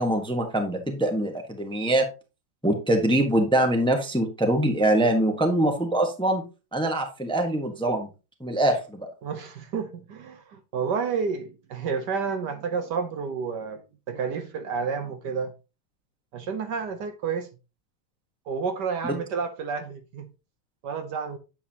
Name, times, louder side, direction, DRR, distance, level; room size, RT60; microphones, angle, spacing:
voice 1, 0.0-2.1 2.6-6.4 6.7-8.1 8.4-9.0 19.0-19.1, right 1 dB, 5° left, 1.0 m, -23 dB
voice 2, 9.2-13.8 14.1-15.5 16.3-17.5 18.5-20.3 20.8-21.4, right 5 dB, 65° right, 1.4 m, -30 dB
9.4 x 7.1 x 2.9 m
omnidirectional pair, 2.1 m